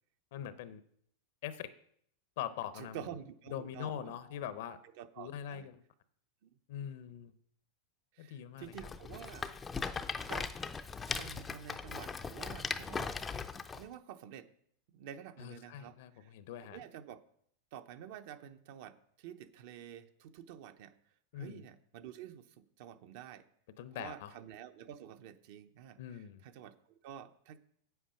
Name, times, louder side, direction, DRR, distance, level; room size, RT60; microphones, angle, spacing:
voice 1, 0.3-0.8 1.4-1.7 2.4-3.1 3.5-4.8 5.2-5.8 6.7-7.3 8.2-8.9 15.4-16.8 21.3-21.6 23.8-24.3 26.0-26.4, left 10 dB, 65° left, 14 dB, 0.8 m, -42 dB
voice 2, 2.7-4.2 5.0-5.7 6.4-6.6 8.1-9.5 10.2-10.5 11.1-13.1 13.7-14.5 14.9-16.3 16.6-17.2 17.7-20.9 21.4-23.4 23.9-27.6, right 10 dB, 55° right, 9 dB, 0.8 m, -49 dB
Rattle, 8.7-13.8, left 5 dB, 15° left, 0.5 m, -39 dB
8.4 x 8.0 x 5.8 m, 0.67 s
supercardioid pair, 155°, 0 cm